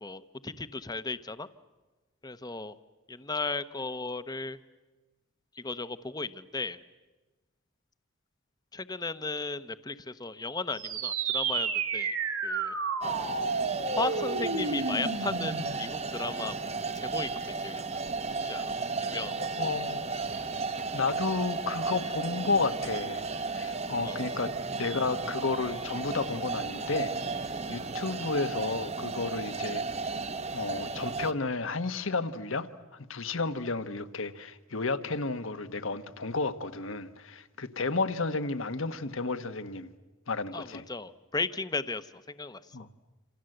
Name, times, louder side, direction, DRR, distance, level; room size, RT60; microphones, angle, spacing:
voice 1, 0.0-1.5 2.2-2.8 3.1-4.6 5.5-6.8 8.7-12.2 12.4-12.8 13.9-17.8 18.4-18.7 19.0-19.4 24.0-24.2 40.5-42.6, left 3 dB, 20° left, 0.8 m, -35 dB
sound 1, 10.7-15.8, right 4 dB, 80° right, 2.9 m, -31 dB
sound 2, 13.0-31.3, right 4 dB, 30° right, 0.9 m, -34 dB
voice 2, 19.4-20.1 20.9-23.2 23.5-27.4 27.7-30.1 30.5-39.9 40.3-40.8 42.7-42.9, left 3 dB, 65° left, 1.3 m, -32 dB
28.0 x 27.0 x 7.8 m
head